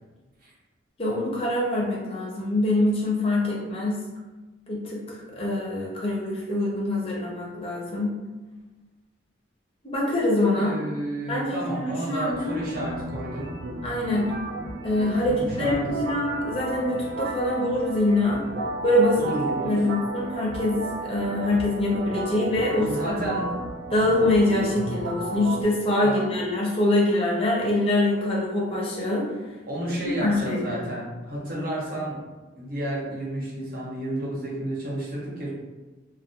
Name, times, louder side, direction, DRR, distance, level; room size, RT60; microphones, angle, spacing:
voice 1, 1.0-4.0 4.7-8.1 9.8-10.7 11.3-12.6 13.8-14.3 14.8-18.5 18.8-19.2 19.6-23.3 23.9-29.3 30.0-30.8, left 1 dB, 30° left, -4 dB, 0.4 m, -24 dB
voice 2, 10.5-13.5 15.2-16.0 19.1-19.8 22.8-23.6 26.0-26.2 29.7-32.2 32.6-35.5, right 1 dB, 45° right, -4 dB, 0.7 m, -31 dB
sound 1, 12.3-25.6, right 2 dB, 75° right, 0.4 m, -33 dB
2.2 x 2.0 x 2.7 m, 1.2 s
head